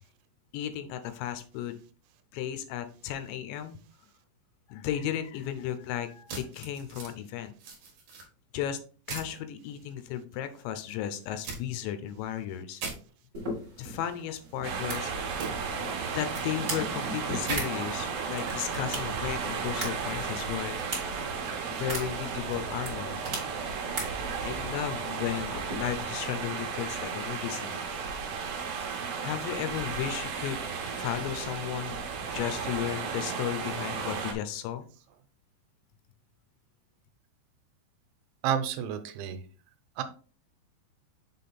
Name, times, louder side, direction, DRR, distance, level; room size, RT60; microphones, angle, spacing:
voice 1, 0.5-1.8 2.3-3.8 4.7-7.5 8.5-8.8 9.1-12.8 13.8-15.1 16.1-21.0 21.7-23.2 24.4-27.9 29.2-30.6 31.0-34.9, left 11 dB, 80° left, 10 dB, 2.9 m, -34 dB
sound 1, 6.3-7.1 7.6-8.2 9.1-9.3 11.4-11.6 12.8-13.0 15.4-15.5 17.4-17.6, right 4 dB, 55° right, 2.6 m, -37 dB
sound 2, 13.3-26.2, right 1 dB, 30° right, 1.8 m, -41 dB
sound 3, 14.6-34.3, right 5 dB, 70° right, 2.5 m, -34 dB
voice 2, 38.4-39.4 40.0-40.1, right 9 dB, 85° right, 9 dB, 3.1 m, -30 dB
7.5 x 3.7 x 4.2 m, 0.39 s
omnidirectional pair, 5.3 m